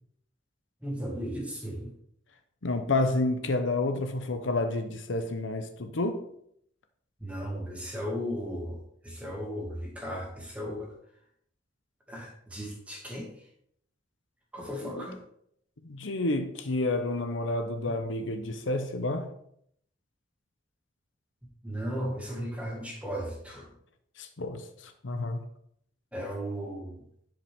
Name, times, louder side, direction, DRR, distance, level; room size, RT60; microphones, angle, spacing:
voice 1, 0.8-1.9 7.2-8.8 9.0-10.9 12.1-13.3 14.5-15.2 21.6-23.7 26.1-27.0, equal, 5° right, -1 dB, 1.9 m, -35 dB
voice 2, 2.6-6.2 14.8-15.0 15.8-19.3 24.2-25.4, left 2 dB, 80° left, 7 dB, 0.8 m, -30 dB
10.0 x 5.1 x 3.6 m, 0.70 s
head